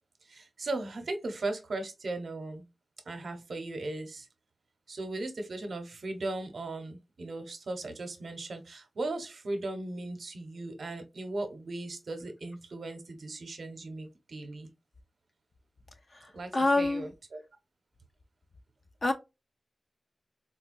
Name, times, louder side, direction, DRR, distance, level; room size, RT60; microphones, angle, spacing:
voice 1, 0.2-2.6 3.1-4.3 4.9-14.7 16.3-17.4, right 2 dB, 60° right, 0.7 m, -37 dB
voice 2, 16.1-17.1 19.0-19.1, left 2 dB, 30° left, 0.4 m, -27 dB
4.0 x 2.2 x 2.5 m
wide cardioid pair, 145°, 0 cm